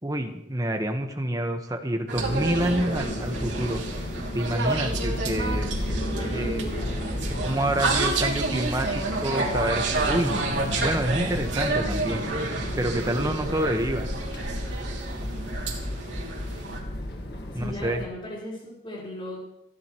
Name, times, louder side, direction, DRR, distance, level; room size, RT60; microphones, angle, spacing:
voice 1, 0.0-3.8 4.3-5.7 6.3-6.6 7.4-10.5 10.8-12.3 12.8-14.1 17.5-18.0, right 1 dB, 20° right, 4 dB, 1.4 m, -27 dB
sound 1, 2.1-18.1, left 1 dB, 65° left, 1.8 m, -32 dB
sound 2, 2.1-16.8, right 3 dB, 85° right, 2.9 m, -30 dB
voice 2, 5.9-7.6 17.5-19.4, left 1 dB, 30° left, -6 dB, 4.7 m, -38 dB
28.0 x 11.0 x 3.2 m, 0.83 s
head